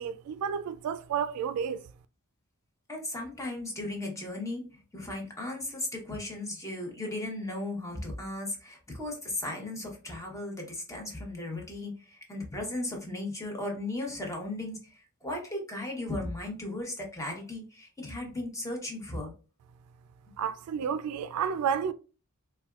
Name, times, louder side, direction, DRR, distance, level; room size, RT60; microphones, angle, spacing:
voice 1, 0.0-1.8 20.4-21.9, right 7 dB, 90° right, 0.3 m, -31 dB
voice 2, 2.9-19.3, left 2 dB, 15° left, 0.9 m, -36 dB
4.1 x 2.2 x 2.3 m
head